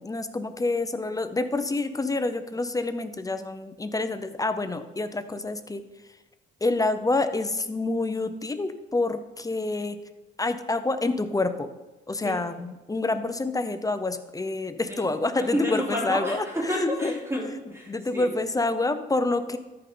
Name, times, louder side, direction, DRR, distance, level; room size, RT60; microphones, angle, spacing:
voice 1, 0.0-5.8 6.6-10.0 10.4-11.7 12.1-16.4 16.8-17.2 17.9-19.6, left 2 dB, 15° left, 10 dB, 0.7 m, -27 dB
voice 2, 15.4-18.3, equal, 15° right, -3 dB, 3.4 m, -30 dB
13.5 x 5.8 x 3.8 m, 1.1 s
cardioid pair, 90°, 20 cm